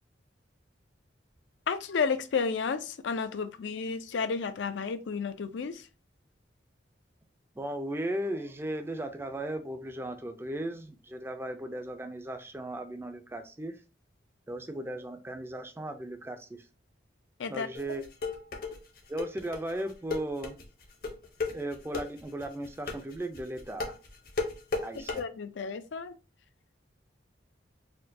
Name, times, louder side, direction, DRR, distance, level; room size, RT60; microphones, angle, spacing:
voice 1, 1.7-5.9 17.4-17.7 25.0-26.1, left 5 dB, 75° left, 0.4 m, -32 dB
voice 2, 7.6-13.8 14.5-16.7 17.5-18.0 19.1-20.6 21.5-24.0 24.8-25.2, right 1 dB, 15° right, 0.4 m, -36 dB
sound 1, 17.7-25.2, left 3 dB, 55° left, 0.8 m, -34 dB
4.2 x 2.2 x 2.6 m
head